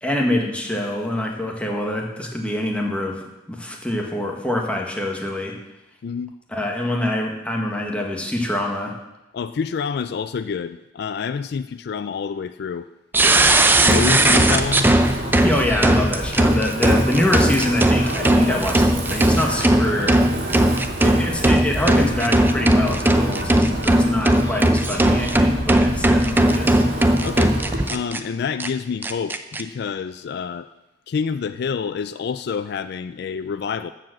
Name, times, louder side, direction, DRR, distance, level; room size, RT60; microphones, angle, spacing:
voice 1, 0.0-5.5 6.5-8.9 15.4-20.2 21.0-26.8, left 1 dB, 5° left, 0 dB, 1.5 m, -25 dB
voice 2, 6.0-6.3 9.3-12.9 13.8-14.9 27.2-27.6 27.9-30.7 31.1-33.9, left 6 dB, 60° left, 11 dB, 0.3 m, -27 dB
sound 1, 13.1-28.2 28.6-28.7 29.0-29.6, right 1 dB, 10° right, 0.5 m, -18 dB
Wind, 13.1-27.9, right 1 dB, 60° right, 2.1 m, -29 dB
13.0 x 5.0 x 7.7 m, 1.0 s
head